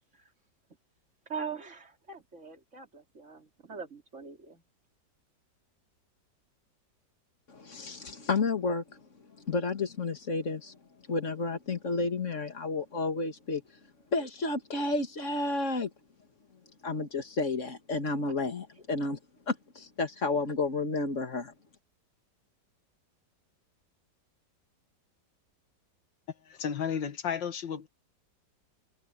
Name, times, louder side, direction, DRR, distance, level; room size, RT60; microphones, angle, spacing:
voice 1, 1.3-4.6, right 6 dB, 40° right, 3.4 m, -42 dB
voice 2, 7.5-9.0 9.4-10.8 11.1-13.6 14.1-15.9 16.8-19.2 19.5-21.5, left 3 dB, 45° left, 2.4 m, -31 dB
voice 3, 26.5-27.9, left 7 dB, 90° left, 2.2 m, -33 dB
omnidirectional pair, 1.9 m